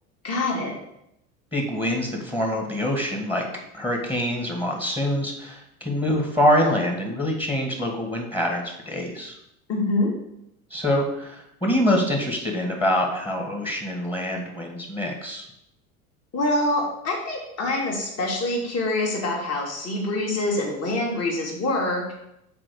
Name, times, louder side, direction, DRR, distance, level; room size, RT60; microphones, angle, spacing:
voice 1, 0.2-0.7 9.7-10.1 16.3-22.1, left 2 dB, 35° left, -2 dB, 2.5 m, -25 dB
voice 2, 1.5-3.5 3.7-9.3 10.7-15.5, left 1 dB, 10° left, 0 dB, 1.8 m, -25 dB
6.0 x 4.5 x 6.5 m, 0.81 s
hypercardioid pair, 75°, 44 cm